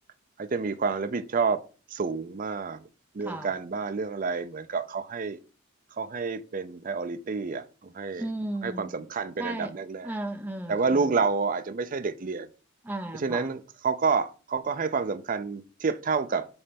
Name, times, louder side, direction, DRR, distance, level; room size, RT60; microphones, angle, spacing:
voice 1, 0.4-1.6 1.9-2.9 3.1-5.4 6.0-8.3 8.6-10.1 10.7-12.5 13.1-16.5, right 4 dB, 40° right, 0.5 m, -29 dB
voice 2, 8.2-8.9 9.4-9.7 10.0-11.1 12.8-13.5, right 1 dB, 10° right, 0.7 m, -35 dB
7.1 x 3.3 x 5.1 m
head